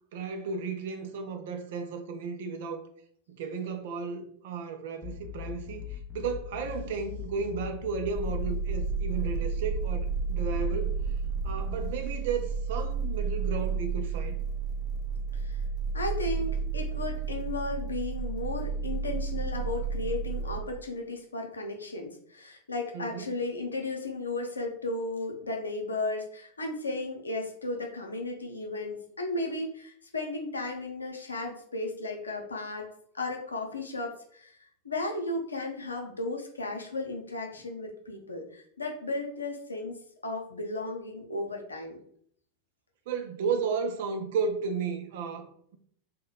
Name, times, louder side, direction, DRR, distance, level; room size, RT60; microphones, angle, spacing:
voice 1, 0.1-2.9 3.3-10.9 11.4-14.4 22.9-23.3 43.1-45.8, right 5 dB, 55° right, 0.5 m, -34 dB
sound 1, 5.0-11.9, left 10 dB, 20° left, 0.5 m, -41 dB
sound 2, 8.1-20.6, right 5 dB, 5° right, 1.0 m, -31 dB
voice 2, 15.9-32.9 33.1-34.6 34.8-42.0, left 2 dB, 75° left, 0.7 m, -35 dB
2.9 x 2.1 x 3.9 m
figure-of-eight pair, 90°, 0 cm